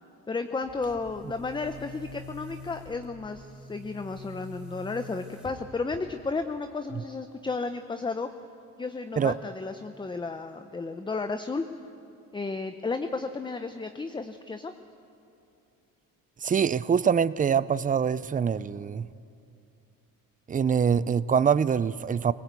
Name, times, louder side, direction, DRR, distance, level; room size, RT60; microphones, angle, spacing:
voice 1, 0.3-8.3 8.8-11.6 12.3-14.7, left 4 dB, 15° left, 8 dB, 0.7 m, -33 dB
Boom, 0.6-6.4, left 1 dB, ahead, 3.2 m, -46 dB
voice 2, 16.4-19.1 20.5-22.3, right 7 dB, 25° right, 17 dB, 0.5 m, -24 dB
21.5 x 17.5 x 8.3 m, 2.6 s
cardioid pair, 110°, 35 cm